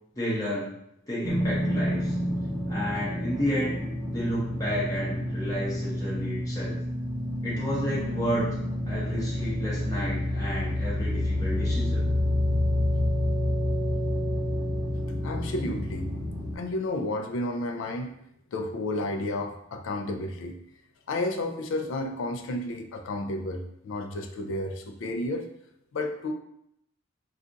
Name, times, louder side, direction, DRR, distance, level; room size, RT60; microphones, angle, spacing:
voice 1, 0.1-0.7 1.1-2.1 2.7-3.7 4.0-6.8 7.4-8.6 8.9-12.0, equal, 15° left, -8 dB, 0.7 m, -31 dB
sound 1, 1.2-16.6, left 1 dB, 20° right, 1.0 m, -28 dB
voice 2, 15.2-16.1 16.5-18.1 18.5-20.6 21.1-25.5 25.9-26.3, left 2 dB, 70° left, 5 dB, 0.4 m, -31 dB
2.4 x 2.4 x 3.8 m, 0.75 s
head